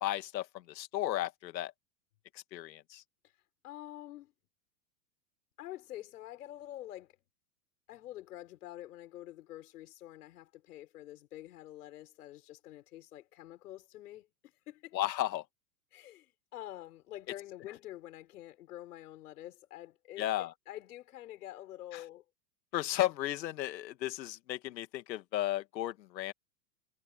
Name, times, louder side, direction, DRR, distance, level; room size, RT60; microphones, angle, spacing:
voice 1, 0.0-1.7 2.5-3.0 14.9-15.4 20.2-20.5 22.7-26.3, left 14 dB, 90° left, 2.0 m, -34 dB
voice 2, 3.6-4.3 5.6-7.2 7.9-14.3 14.7-15.0 15.9-22.2, left 14 dB, 65° left, 6.3 m, -47 dB
supercardioid pair, 180°, 49 cm